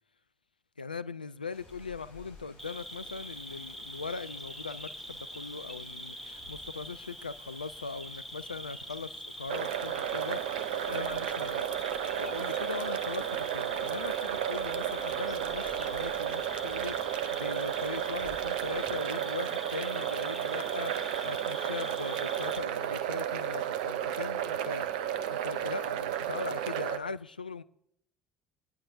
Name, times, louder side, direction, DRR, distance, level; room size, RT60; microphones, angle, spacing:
voice 1, 0.8-11.7 12.1-27.6, left 4 dB, 90° left, 0.4 m, -40 dB
Rain, 1.5-18.9, left 2 dB, 50° left, 5.1 m, -56 dB
Cricket, 2.6-22.6, equal, 5° left, 1.7 m, -44 dB
sound 1, 9.5-27.0, right 10 dB, 70° right, 0.7 m, -33 dB
22.0 x 10.0 x 2.6 m
figure-of-eight pair, 65°, 5 cm